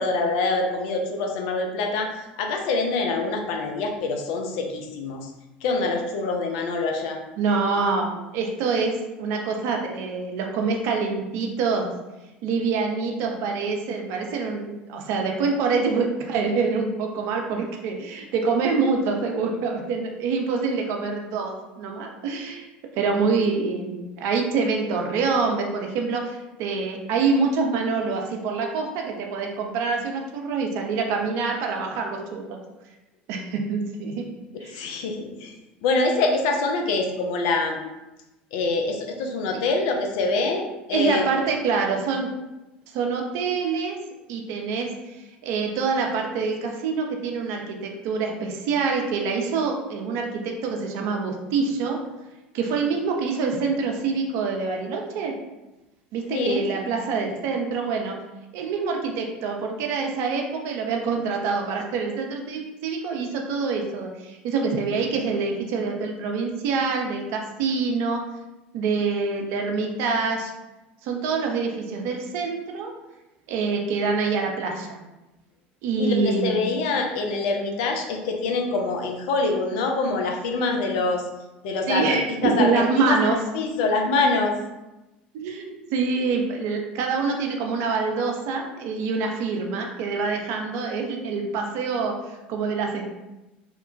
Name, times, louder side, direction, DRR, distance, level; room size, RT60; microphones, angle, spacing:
voice 1, 0.0-2.1 2.4-5.3 5.6-7.2 34.7-35.5 35.8-37.9 38.5-41.5 56.3-56.6 76.0-81.2 81.6-84.6, left 3 dB, 65° left, 3 dB, 0.4 m, -25 dB
voice 2, 7.4-11.9 12.4-22.7 22.9-32.6 33.3-34.2 34.6-34.8 40.9-42.3 42.9-44.0 44.3-52.0 52.5-55.3 56.1-58.2 58.5-68.2 68.7-70.5 71.0-72.9 73.5-75.0 75.8-76.6 81.9-83.4 85.3-93.1, right 4 dB, 55° right, 2 dB, 0.5 m, -26 dB
2.9 x 2.1 x 2.5 m, 1.0 s
hypercardioid pair, 75°, 6 cm